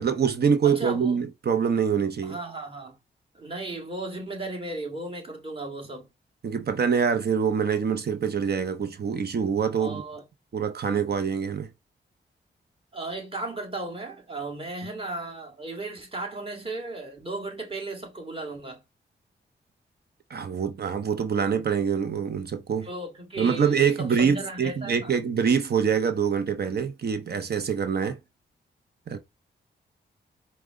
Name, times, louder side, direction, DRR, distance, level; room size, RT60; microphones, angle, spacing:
voice 1, 0.0-2.4 6.4-10.0 10.5-11.7 20.3-22.9 23.4-28.2 29.1-29.2, right 6 dB, 60° right, 0.7 m, -25 dB
voice 2, 0.6-1.2 2.2-3.0 3.3-6.1 9.8-10.2 12.9-18.8 22.8-25.2, right 2 dB, 30° right, 2.0 m, -35 dB
4.7 x 2.1 x 3.6 m
cardioid pair, 60°, 19 cm